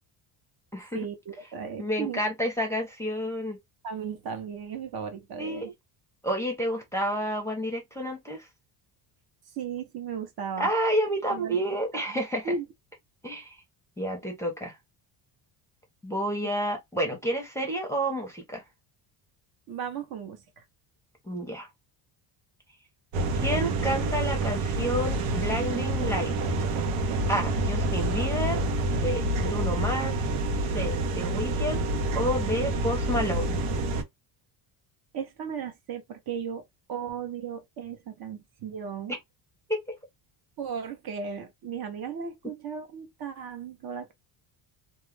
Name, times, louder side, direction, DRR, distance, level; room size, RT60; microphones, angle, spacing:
voice 1, 0.9-2.2 3.8-5.7 9.5-10.7 11.3-11.6 12.4-12.6 19.7-20.6 35.1-39.1 40.6-44.1, right 6 dB, 50° right, 0.7 m, -36 dB
voice 2, 1.8-3.6 5.4-5.7 6.2-8.5 10.6-12.5 13.2-13.6 14.0-14.7 16.0-18.6 21.3-21.7 23.4-26.5 27.3-28.6 28.9-30.3 30.7-31.9 32.1-33.6 39.7-40.0, equal, 5° left, 0.6 m, -30 dB
sound 1, 23.1-34.0, right 2 dB, 85° right, 0.8 m, -28 dB
2.3 x 2.1 x 3.1 m
cardioid pair, 135°, 50 cm